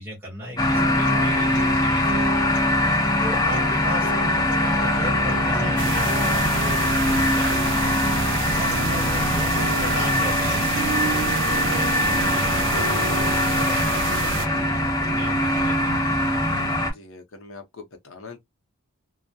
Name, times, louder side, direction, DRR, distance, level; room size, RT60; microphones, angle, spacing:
voice 1, 0.0-2.6 3.2-8.0 8.5-13.3 13.5-16.0, equal, 10° right, 1.0 m, -36 dB
sound 1, 0.6-16.9, left 1 dB, 15° left, 0.6 m, -22 dB
sound 2, 0.7-16.7, right 2 dB, 75° right, 0.9 m, -35 dB
sound 3, 5.8-14.5, right 6 dB, 55° right, 0.3 m, -30 dB
voice 2, 16.8-18.4, left 4 dB, 60° left, 0.6 m, -43 dB
2.3 x 2.0 x 2.6 m
head